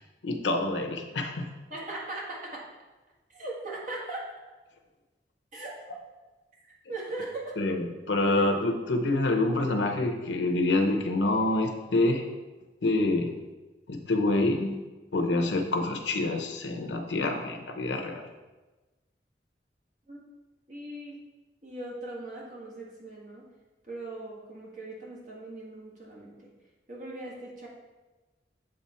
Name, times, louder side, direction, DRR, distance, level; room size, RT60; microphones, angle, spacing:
voice 1, 0.2-1.5 7.6-12.2 12.8-13.3 13.9-14.8 15.1-18.3, left 2 dB, 85° left, 4 dB, 0.8 m, -27 dB
voice 2, 1.7-2.7 3.3-4.2 5.5-5.7 6.7-7.6 8.3-8.5 20.1-20.2 20.7-21.2 21.6-23.5 23.9-26.5 26.9-27.7, right 2 dB, 45° right, -4 dB, 1.6 m, -39 dB
7.8 x 3.7 x 4.3 m, 1.2 s
head